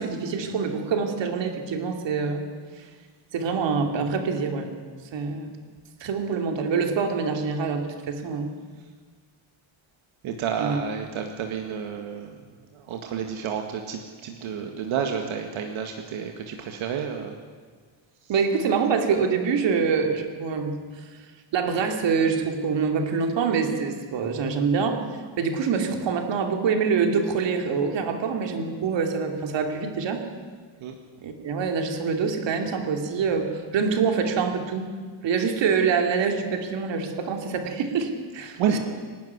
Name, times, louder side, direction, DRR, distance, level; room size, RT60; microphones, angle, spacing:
voice 1, 0.0-2.5 2.7-2.9 3.3-4.7 5.1-5.5 6.0-8.5 10.6-10.8 18.3-20.8 21.5-25.0 25.4-30.2 31.2-34.9 35.2-38.8, right 5 dB, 65° right, 4 dB, 2.9 m, -25 dB
voice 2, 10.2-12.3 12.7-17.3 30.8-30.9 38.6-38.8, right 7 dB, 90° right, 3 dB, 2.0 m, -30 dB
26.0 x 12.0 x 9.7 m, 1.5 s
cardioid pair, 170°, 47 cm